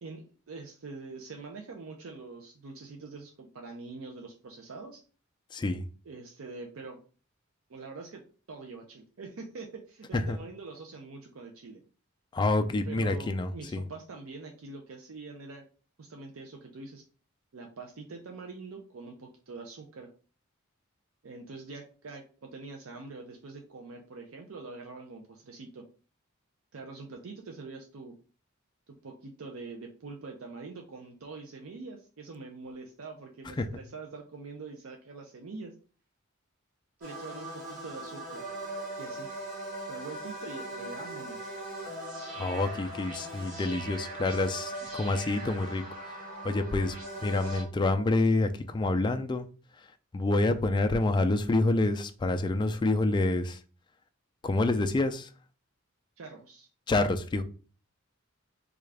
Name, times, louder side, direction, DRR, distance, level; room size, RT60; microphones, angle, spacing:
voice 1, 0.0-5.0 6.1-7.0 7.7-8.2 8.5-11.8 12.8-15.6 16.0-17.0 17.5-20.1 21.2-25.8 26.7-28.1 29.0-35.7 37.0-38.5 39.0-39.3 39.9-41.5 56.2-56.7, right 3 dB, 80° right, 2 dB, 0.5 m, -44 dB
voice 2, 5.5-5.8 10.1-10.4 12.3-13.8 33.6-33.7 42.4-46.1 46.4-49.5 50.1-53.6 54.4-55.3 56.9-57.4, left 2 dB, 20° left, 7 dB, 0.3 m, -27 dB
sound 1, 37.0-47.6, right 1 dB, 40° right, 1.2 m, -40 dB
3.6 x 2.3 x 3.3 m, 0.38 s
head